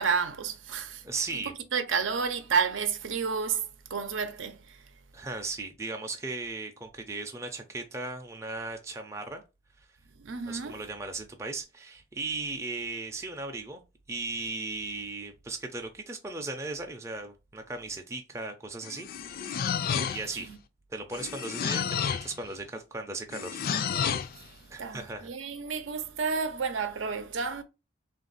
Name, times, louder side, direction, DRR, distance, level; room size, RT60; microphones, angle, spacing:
voice 1, 0.0-1.0 1.3-1.4 1.7-4.8 10.2-10.8 20.3-20.6 24.3-27.6, right 5 dB, 80° right, 0.6 m, -31 dB
voice 2, 1.0-1.5 5.1-9.4 9.8-9.9 10.5-13.8 14.1-19.7 20.1-20.5 20.9-23.6 24.7-25.3, right 3 dB, 15° right, 0.4 m, -37 dB
sound 1, 18.8-20.4 21.1-22.4 23.3-24.4, left 7 dB, 50° left, 0.3 m, -31 dB
3.5 x 2.5 x 3.9 m
head